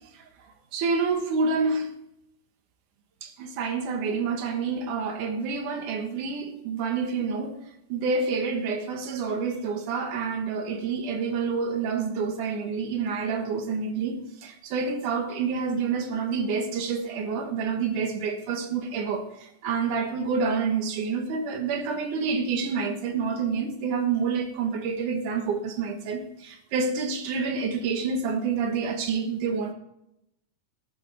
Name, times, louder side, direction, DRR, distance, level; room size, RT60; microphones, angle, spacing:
voice 1, 0.7-1.9 3.2-7.6 7.9-29.7, right 5 dB, 65° right, 2.8 m, -28 dB
13.0 x 13.0 x 3.5 m
omnidirectional pair, 4.0 m